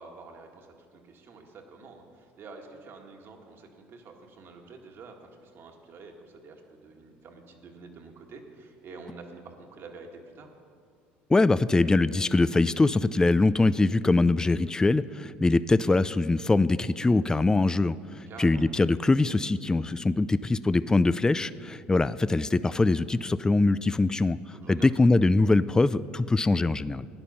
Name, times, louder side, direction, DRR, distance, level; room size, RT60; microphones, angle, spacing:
voice 1, 0.0-10.6 18.3-18.7 24.5-24.9, right 4 dB, 50° right, 2 dB, 1.8 m, -48 dB
voice 2, 11.3-24.4 24.7-27.1, left 2 dB, 15° left, 16 dB, 0.3 m, -23 dB
13.0 x 10.0 x 5.5 m, 2.2 s
supercardioid pair, 80°, 5 cm